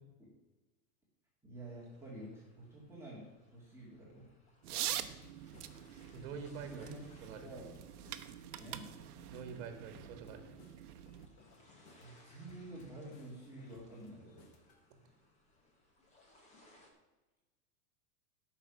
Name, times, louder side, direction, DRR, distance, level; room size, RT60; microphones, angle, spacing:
voice 1, 1.4-3.3 3.5-4.3 6.7-7.0 7.4-7.7 8.6-8.9 12.0-14.5, right 1 dB, 5° right, -6 dB, 2.1 m, -49 dB
sound 1, 1.6-16.9, left 1 dB, 15° left, 1.5 m, -67 dB
sound 2, 4.6-11.3, right 11 dB, 80° right, 1.0 m, -45 dB
sound 3, 4.9-14.8, left 4 dB, 30° left, 1.2 m, -62 dB
voice 2, 6.1-6.9 7.2-7.6 9.3-10.6, right 6 dB, 40° right, 7 dB, 1.8 m, -46 dB
14.0 x 5.8 x 5.8 m, 1.2 s
supercardioid pair, 170°, 45 cm